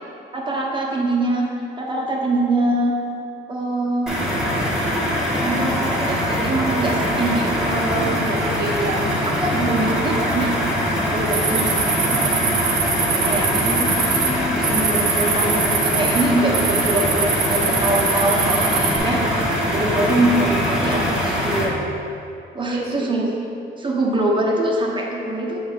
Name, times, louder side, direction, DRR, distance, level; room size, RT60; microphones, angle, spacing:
voice 1, 0.3-1.5 1.8-3.0 3.5-4.3 5.4-8.5 9.3-10.5 11.1-11.7 12.1-12.6 13.2-13.8 14.6-19.2 19.7-21.9 22.5-23.4 23.8-25.6, right 2 dB, 25° right, -2 dB, 1.0 m, -23 dB
sound 1, 4.1-21.6, equal, 5° right, 1.4 m, -22 dB
voice 2, 8.4-9.2 13.6-14.6 22.7-23.1, right 1 dB, 55° right, -2 dB, 0.9 m, -28 dB
sound 2, 11.3-14.3 14.6-16.2 16.5-19.0, right 6 dB, 80° right, 1.0 m, -23 dB
7.8 x 2.7 x 5.0 m, 2.7 s
cardioid pair, 90°, 20 cm